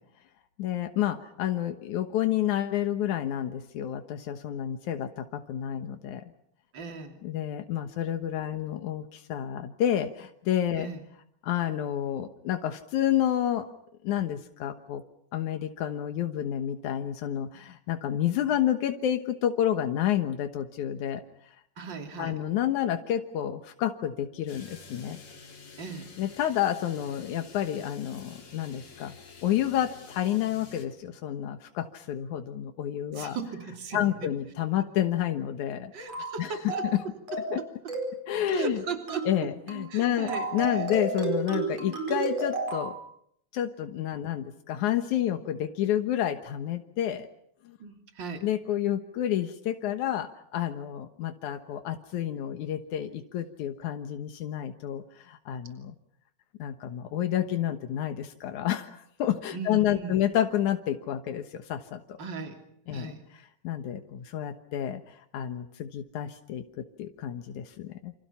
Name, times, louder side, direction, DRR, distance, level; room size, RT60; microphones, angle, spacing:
voice 1, 0.6-6.2 7.2-10.9 11.4-13.7 14.0-15.0 15.3-21.2 22.2-25.2 26.2-29.2 29.4-33.4 33.9-35.9 36.4-36.6 36.8-37.0 37.5-37.6 38.3-38.8 39.3-43.0 43.5-47.3 47.6-47.8 48.4-56.0 56.6-62.0 62.9-63.1 63.6-68.1, left 11 dB, 85° left, 7 dB, 2.7 m, -29 dB
voice 2, 6.7-7.2 10.8-11.0 21.8-22.4 25.8-26.1 33.1-34.3 35.9-36.9 38.5-39.3 39.9-40.9 47.8-48.4 59.5-60.2 62.2-62.6 62.9-63.2, right 4 dB, 40° right, 4 dB, 3.5 m, -37 dB
sound 1, 24.5-30.9, left 4 dB, 65° left, 4.6 m, -49 dB
sound 2, 36.1-36.4 36.7-37.0 37.3-37.6 37.9-38.2 38.5-38.8 39.1-39.4 39.7-39.9 40.3-42.9, right 3 dB, 60° right, 6.0 m, -31 dB
28.5 x 28.0 x 5.8 m, 0.72 s
omnidirectional pair, 3.3 m